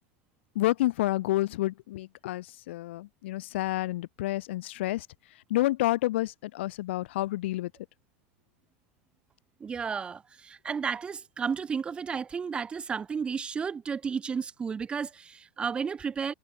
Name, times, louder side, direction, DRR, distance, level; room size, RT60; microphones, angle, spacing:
voice 1, 0.5-5.1 5.5-7.7, left 16 dB, 70° left, 2.4 m, -29 dB
voice 2, 9.6-16.3, right 6 dB, 15° right, 2.2 m, -33 dB
supercardioid pair, 155°, 6 cm